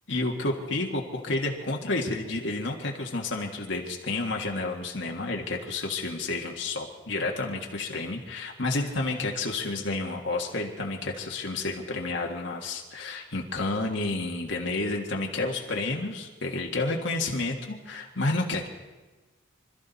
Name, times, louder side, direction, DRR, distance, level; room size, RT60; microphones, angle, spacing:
voice 1, 0.1-18.7, left 2 dB, 60° left, 0 dB, 1.7 m, -30 dB
26.0 x 13.5 x 4.1 m, 1.2 s
head